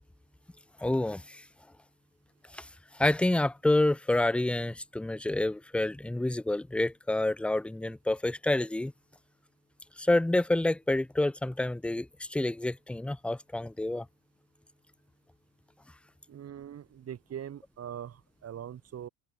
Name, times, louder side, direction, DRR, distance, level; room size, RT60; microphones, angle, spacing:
voice 1, 0.8-1.4 2.5-2.7 2.9-8.9 10.0-14.1, left 1 dB, 5° left, 0.7 m, -28 dB
voice 2, 16.3-19.1, right 9 dB, 40° right, 4.6 m, -42 dB
supercardioid pair, 100°, 37 cm